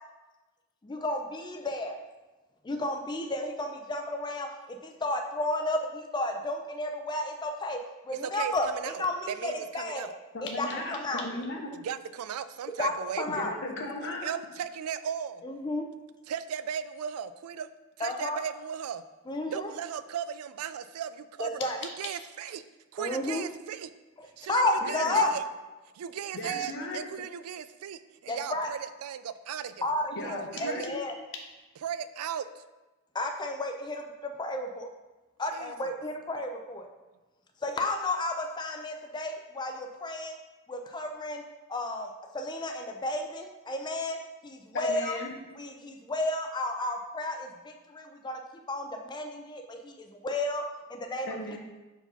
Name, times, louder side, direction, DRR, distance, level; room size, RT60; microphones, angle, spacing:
voice 1, 0.8-2.0 2.6-7.8 8.1-8.7 9.0-10.1 10.6-11.3 12.8-12.9 13.2-13.5 15.4-15.8 18.0-18.4 19.3-19.7 21.4-21.8 23.0-23.4 24.5-25.3 28.3-28.7 29.8-31.1 33.1-34.9 35.4-36.9 37.6-40.4 40.7-41.4 41.7-44.2 44.4-45.2 45.6-48.4 48.7-49.9 50.2-50.6 50.9-51.3, left 2 dB, 20° left, 4 dB, 0.4 m, -32 dB
voice 2, 8.1-10.1 10.7-10.8 11.8-13.3 14.0-15.4 16.3-17.7 18.0-19.0 19.5-22.6 22.9-23.9 24.4-25.4 25.9-29.9 30.2-30.9 31.8-32.6 35.5-35.7, right 8 dB, 75° right, 13 dB, 0.3 m, -37 dB
voice 3, 10.3-11.7 13.3-14.3 24.8-25.2 26.3-27.1 30.1-31.0 44.7-45.3 51.3-51.6, left 2 dB, 60° left, 1 dB, 0.9 m, -36 dB
4.8 x 4.0 x 5.4 m, 1.1 s
head